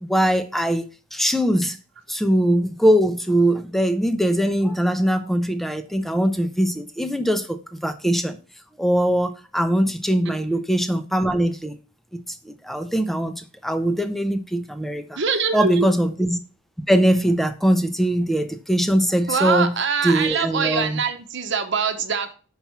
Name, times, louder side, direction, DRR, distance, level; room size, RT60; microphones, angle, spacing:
voice 1, 0.0-1.8 2.1-8.4 8.8-11.8 12.3-15.2 15.5-16.4 16.9-21.0, equal, ahead, 0.6 m, -21 dB
voice 2, 15.2-15.9 19.3-22.3, right 5 dB, 60° right, 1.1 m, -23 dB
5.8 x 4.7 x 5.7 m
head